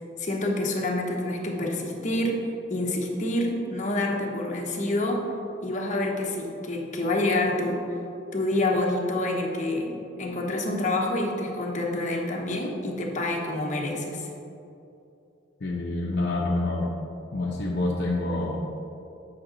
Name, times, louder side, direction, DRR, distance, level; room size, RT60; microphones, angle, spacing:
voice 1, 0.2-5.2 5.6-7.8 8.3-14.3, left 1 dB, 35° left, -1 dB, 0.9 m, -27 dB
voice 2, 15.6-16.9 17.3-18.6, left 2 dB, 55° left, -3 dB, 0.7 m, -27 dB
7.7 x 5.8 x 3.8 m, 2.7 s
head